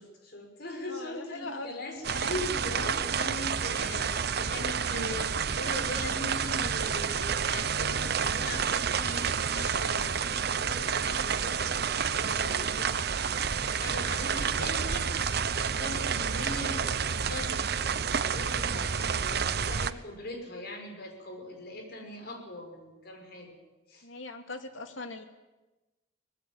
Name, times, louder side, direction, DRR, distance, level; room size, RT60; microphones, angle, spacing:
voice 1, 0.0-13.4 13.6-23.6 23.9-24.1, left 2 dB, 55° left, 4 dB, 5.7 m, -40 dB
voice 2, 0.9-1.8 18.7-19.0 24.0-25.2, left 2 dB, 90° left, 5 dB, 2.7 m, -41 dB
sound 1, 2.0-19.9, right 6 dB, 55° right, 0.9 m, -29 dB
24.5 x 19.0 x 8.9 m, 1.1 s
head